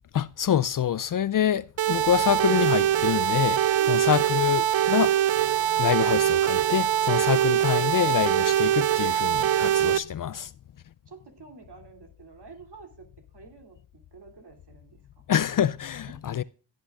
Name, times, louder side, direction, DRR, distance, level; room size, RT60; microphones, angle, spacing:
voice 1, 0.1-5.5 5.8-10.5 15.3-16.4, left 9 dB, 50° left, 0.4 m, -26 dB
sound 1, 1.8-10.0, right 11 dB, 80° right, 0.6 m, -23 dB
voice 2, 3.8-4.2 11.1-13.1 13.3-15.2 16.0-16.1, right 4 dB, 60° right, 2.8 m, -48 dB
16.0 x 8.6 x 2.4 m
cardioid pair, 55°, 45 cm